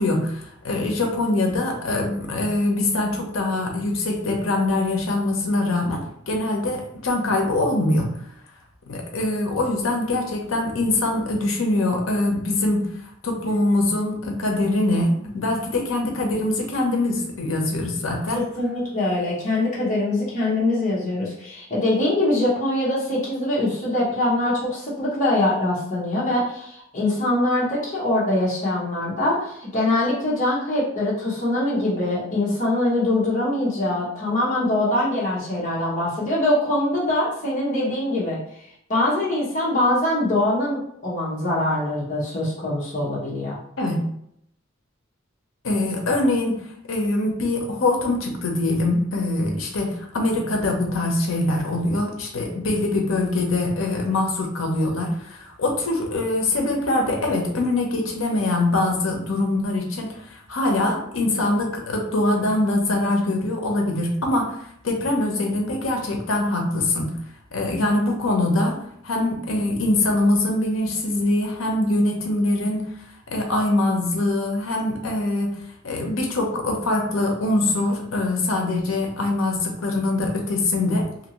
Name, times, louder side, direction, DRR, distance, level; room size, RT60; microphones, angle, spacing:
voice 1, 0.0-8.1 8.9-12.9 13.2-18.4 43.8-44.0 45.6-64.6 64.8-67.1 67.5-68.8 69.0-72.9 73.3-81.1, left 2 dB, 85° left, 1 dB, 0.7 m, -23 dB
voice 2, 18.3-38.4 38.9-43.6, left 1 dB, 40° left, -7 dB, 1.0 m, -23 dB
2.8 x 2.6 x 3.0 m, 0.71 s
head